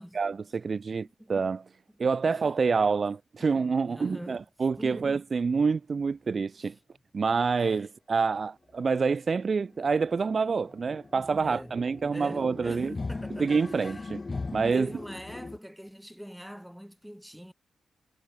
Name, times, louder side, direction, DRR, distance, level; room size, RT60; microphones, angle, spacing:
voice 1, 0.0-1.6 2.0-6.7 7.1-12.9 13.4-14.2 14.5-14.9, right 5 dB, 50° right, 0.8 m, -27 dB
voice 2, 0.9-1.3 2.3-2.4 3.4-3.6 3.8-4.4 4.8-5.1 6.6-6.7 7.6-7.7 11.1-11.8 12.1-13.5 13.8-14.0 14.7-17.5, equal, ahead, 8.0 m, -43 dB
sound 1, 8.7-8.8 9.2-9.3 9.5-15.6, left 3 dB, 35° left, 2.8 m, -40 dB
cardioid pair, 55°, 0 cm